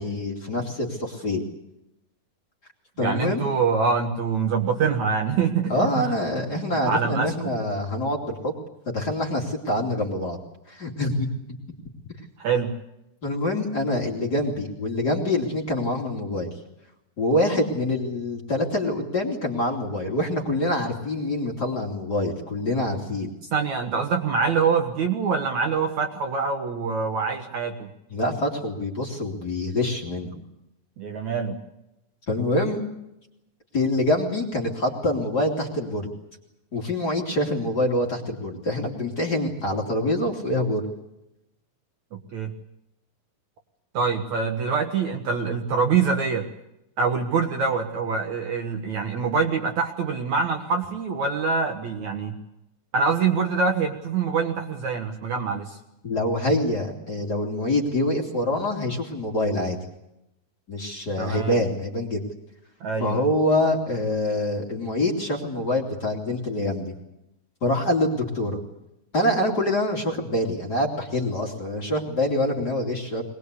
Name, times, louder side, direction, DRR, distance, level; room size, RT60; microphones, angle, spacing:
voice 1, 0.0-1.5 3.0-3.4 5.7-8.5 8.9-10.4 10.7-11.3 13.2-16.5 17.2-23.3 28.1-30.3 32.3-32.9 33.7-36.1 36.7-40.8 56.0-59.8 60.7-62.2 63.0-66.9 67.6-68.6 69.1-73.2, left 1 dB, 30° left, 1 dB, 2.9 m, -25 dB
voice 2, 3.0-5.7 6.0-6.1 6.8-7.5 12.4-12.7 23.5-27.9 31.0-31.6 42.1-42.5 43.9-46.5 47.0-52.3 52.9-55.8 61.2-61.6 62.8-63.2, right 5 dB, 55° right, 4 dB, 2.4 m, -25 dB
22.0 x 20.5 x 8.4 m, 0.87 s
omnidirectional pair, 4.5 m